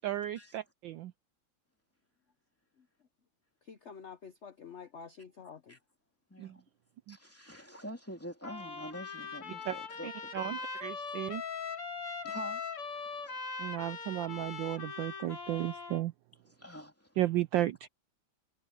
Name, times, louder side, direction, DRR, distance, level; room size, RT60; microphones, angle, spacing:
voice 1, 0.0-1.1 6.4-6.6 7.1-7.2 9.7-9.8 10.0-11.4 13.6-16.1 17.2-17.9, right 14 dB, 70° right, 1.2 m, -34 dB
voice 2, 3.7-5.8, left 6 dB, 60° left, 0.7 m, -48 dB
voice 3, 6.3-6.6 7.1-10.6 12.2-12.6 12.9-13.4 16.5-17.1, equal, 5° left, 2.9 m, -46 dB
Trumpet, 8.4-16.0, left 5 dB, 75° left, 4.2 m, -41 dB
omnidirectional pair, 2.4 m